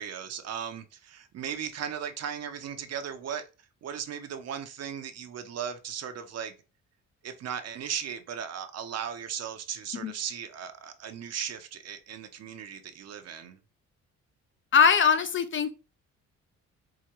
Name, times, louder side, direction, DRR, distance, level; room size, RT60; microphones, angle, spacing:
voice 1, 0.0-3.4 3.8-6.5 7.2-13.6, right 8 dB, 55° right, 0.6 m, -37 dB
voice 2, 14.7-15.8, left 6 dB, 40° left, 0.4 m, -22 dB
4.7 x 2.1 x 2.9 m
cardioid pair, 90°, 30 cm